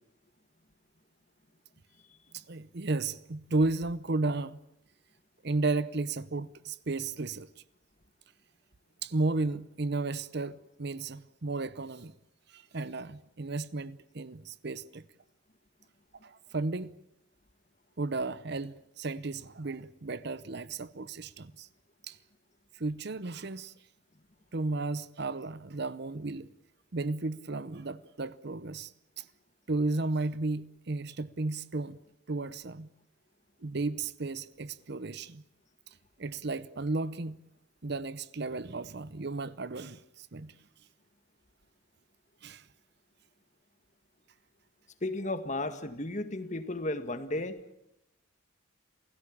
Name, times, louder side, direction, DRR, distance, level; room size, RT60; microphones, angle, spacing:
voice 1, 2.3-4.6 5.4-7.5 9.0-12.1 12.5-15.0 16.2-16.9 18.0-21.7 22.1-22.2 22.7-23.7 24.5-26.5 26.9-28.9 29.2-29.3 29.7-32.0 32.3-32.9 33.6-35.4 36.2-37.4 37.8-40.5 42.4-42.7, right 3 dB, 50° right, 0.8 m, -34 dB
voice 2, 45.0-47.6, left 2 dB, 35° left, 1.8 m, -34 dB
28.0 x 16.5 x 8.7 m
head